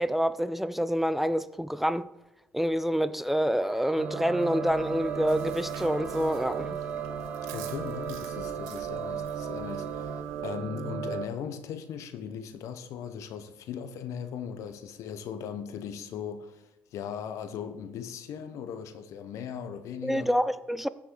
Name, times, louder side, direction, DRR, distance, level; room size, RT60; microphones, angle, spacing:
voice 1, 0.0-2.1 2.5-6.8 20.0-20.9, equal, 5° right, 0.4 m, -27 dB
sound 1, 3.6-10.2, right 3 dB, 30° right, 1.0 m, -44 dB
sound 2, 4.0-11.3, right 8 dB, 55° right, 1.0 m, -35 dB
Chewing mastication, 4.7-10.4, right 10 dB, 85° right, 0.7 m, -48 dB
voice 2, 7.5-20.3, left 7 dB, 70° left, 0.9 m, -38 dB
14.5 x 6.1 x 3.8 m
supercardioid pair, 65°, 5 cm